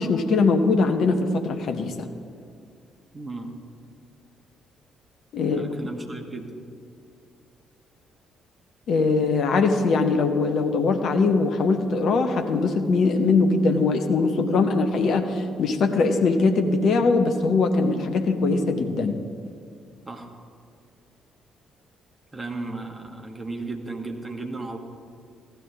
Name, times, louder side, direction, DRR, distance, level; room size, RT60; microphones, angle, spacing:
voice 1, 0.0-2.1 5.3-5.6 8.9-19.2, left 3 dB, 55° left, 6 dB, 0.8 m, -21 dB
voice 2, 3.1-3.5 5.4-6.6 20.0-20.3 22.3-24.8, right 3 dB, 20° right, 2 dB, 1.5 m, -35 dB
15.0 x 11.5 x 3.5 m, 2.3 s
figure-of-eight pair, 45°, 0 cm